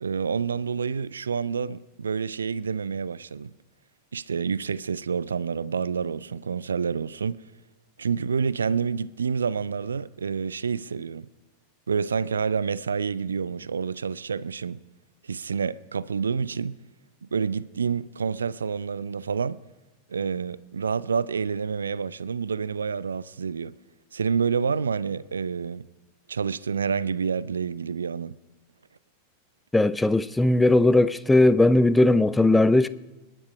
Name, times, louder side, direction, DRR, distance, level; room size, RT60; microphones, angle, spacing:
voice 1, 0.0-3.5 4.1-7.4 8.0-11.3 11.9-14.8 15.2-16.8 17.2-19.6 20.1-23.7 24.1-25.9 26.3-28.4, right 6 dB, 70° right, 0.4 m, -28 dB
voice 2, 29.7-32.9, left 2 dB, 5° left, 0.5 m, -18 dB
29.0 x 10.0 x 5.0 m
figure-of-eight pair, 90°, 0 cm